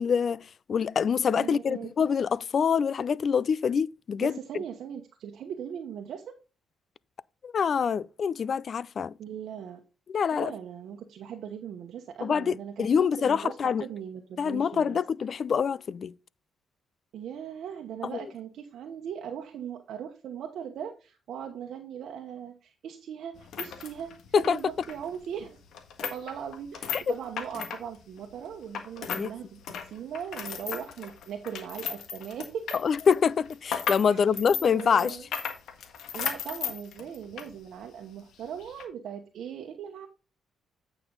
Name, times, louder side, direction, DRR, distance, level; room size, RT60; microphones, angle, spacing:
voice 1, 0.0-4.3 7.4-9.1 10.1-10.5 12.2-13.8 14.4-16.1 18.1-18.2 24.3-24.6 26.9-27.1 29.1-29.3 32.8-35.2, left 6 dB, 50° left, 0.3 m, -25 dB
voice 2, 1.3-1.9 4.2-6.3 9.2-9.8 10.3-15.0 17.1-25.6 26.0-29.6 29.9-32.8 34.1-35.3 36.1-40.1, right 8 dB, 70° right, 1.0 m, -39 dB
sound 1, 23.3-29.3 29.6-37.5 37.8-37.9 38.6-38.8, left 7 dB, 75° left, 1.5 m, -36 dB
8.8 x 5.9 x 3.8 m
cardioid pair, 90°, 0 cm